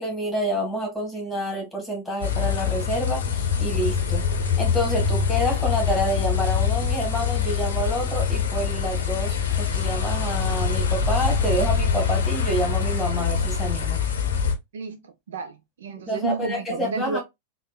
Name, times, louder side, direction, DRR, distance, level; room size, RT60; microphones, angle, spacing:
voice 1, 0.0-4.2 4.6-14.0 16.1-17.2, equal, 5° left, 1.4 m, -28 dB
sound 1, 2.2-14.5, left 6 dB, 65° left, 0.6 m, -24 dB
voice 2, 14.7-17.2, right 4 dB, 65° right, 0.4 m, -31 dB
3.4 x 2.0 x 2.2 m
figure-of-eight pair, 90°, 0 cm